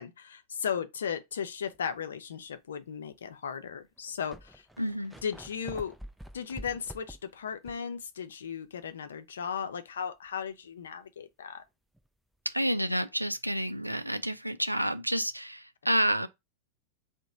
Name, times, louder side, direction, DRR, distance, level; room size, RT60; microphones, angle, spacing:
voice 1, 0.0-4.7 5.2-5.9 6.3-11.6, left 7 dB, 65° left, 0.5 m, -36 dB
sound 1, 1.7-2.0 2.7-2.8 3.7-3.8 4.0-7.9 8.3-8.4 11.9-12.1, right 1 dB, ahead, 0.3 m, -47 dB
voice 2, 4.8-5.1 12.5-16.3, equal, 90° right, 0.4 m, -29 dB
2.9 x 2.1 x 3.7 m
figure-of-eight pair, 90°, 0 cm